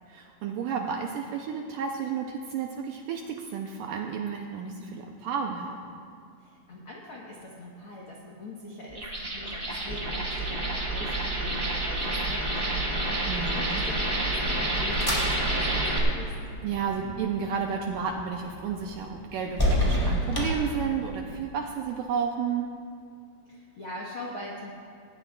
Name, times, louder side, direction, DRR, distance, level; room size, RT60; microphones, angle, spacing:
voice 1, 0.1-5.8 13.3-13.9 16.6-22.7, right 6 dB, 85° right, 2 dB, 1.9 m, -32 dB
voice 2, 6.4-9.1 9.3-16.4 23.5-24.7, left 1 dB, 70° left, -4 dB, 1.3 m, -42 dB
sound 1, 8.9-16.0, right 2 dB, 55° right, 0.6 m, -29 dB
sound 2, 14.1-21.3, equal, 5° left, 2.2 m, -31 dB
19.0 x 17.0 x 2.4 m, 2.3 s
omnidirectional pair, 4.5 m